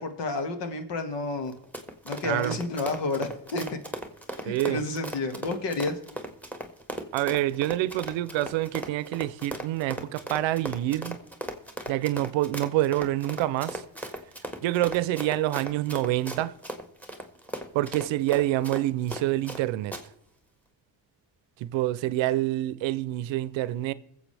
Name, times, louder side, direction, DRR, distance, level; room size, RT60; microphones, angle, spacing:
voice 1, 0.0-1.5 2.0-3.6 4.3-6.0, left 3 dB, 70° left, 2.0 m, -30 dB
Run, 1.5-19.6 19.9-20.0, right 1 dB, 5° left, 1.7 m, -37 dB
voice 2, 2.2-2.6 4.5-4.8 7.1-11.2 11.9-13.8 14.6-16.6 17.7-19.9 21.6-23.9, right 15 dB, 85° right, 0.7 m, -27 dB
22.0 x 7.8 x 3.4 m
cardioid pair, 90°, 44 cm